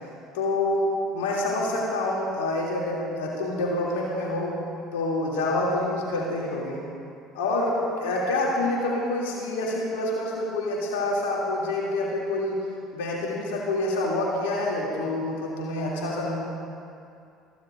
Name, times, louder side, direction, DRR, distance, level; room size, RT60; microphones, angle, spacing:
voice 1, 0.3-4.6 4.9-6.8 7.3-12.6 12.9-16.4, left 2 dB, 75° left, -4 dB, 2.8 m, -27 dB
23.0 x 15.5 x 2.6 m, 2.4 s
hypercardioid pair, 60°, 0 cm